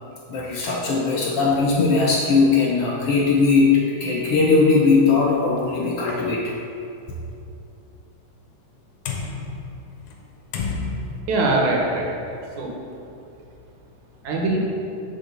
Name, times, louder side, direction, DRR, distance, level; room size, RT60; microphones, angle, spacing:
voice 1, 0.3-6.5, left 4 dB, 70° left, -3 dB, 1.6 m, -19 dB
sound 1, 5.6-5.7 6.1-6.2 9.1-10.3 10.5-11.2, left 4 dB, 85° left, 2.2 m, -30 dB
voice 2, 11.3-12.7 14.2-14.6, right 2 dB, 85° right, -1 dB, 2.6 m, -23 dB
7.0 x 5.0 x 6.7 m, 2.7 s
omnidirectional pair, 3.3 m